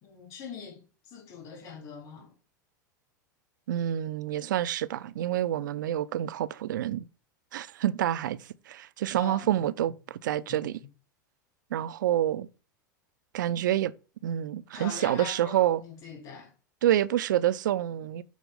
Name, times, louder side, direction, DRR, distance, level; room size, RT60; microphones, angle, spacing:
voice 1, 0.0-2.3 9.1-9.5 10.5-10.6 14.7-16.5, left 4 dB, 50° left, 3.4 m, -42 dB
voice 2, 3.7-7.0 7.5-10.8 11.7-12.5 13.3-13.9 14.2-15.8 16.8-18.2, right 12 dB, 75° right, 0.5 m, -28 dB
6.4 x 4.0 x 5.1 m
hypercardioid pair, 95°, 10 cm